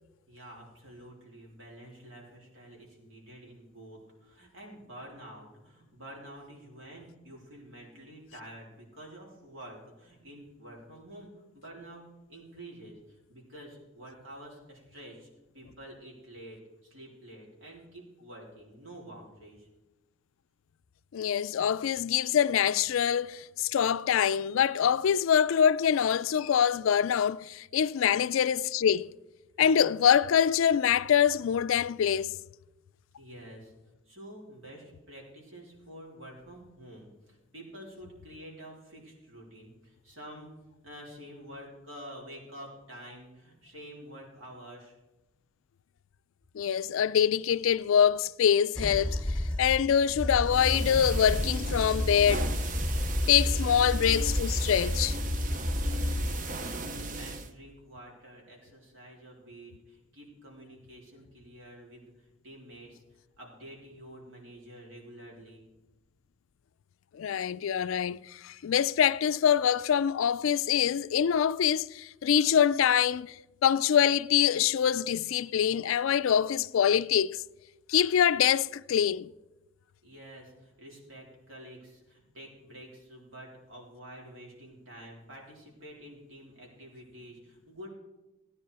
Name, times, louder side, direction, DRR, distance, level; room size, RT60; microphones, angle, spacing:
voice 1, 0.3-12.0 12.3-15.3 15.5-19.7 27.9-28.0 33.2-33.7 34.1-40.5 40.8-44.9 53.5-53.8 55.9-63.0 63.4-65.6 80.0-87.9, right 1 dB, 70° right, 3.8 m, -48 dB
voice 2, 21.1-29.1 29.6-32.4 46.5-49.2 49.6-52.5 53.3-55.2 67.1-77.4 77.9-79.3, left 8 dB, 75° left, 0.3 m, -25 dB
sound 1, 48.8-56.7 57.0-57.2, left 1 dB, 5° left, 0.9 m, -31 dB
sound 2, 50.5-57.5, right 2 dB, 40° right, 0.7 m, -37 dB
16.0 x 9.6 x 4.8 m
head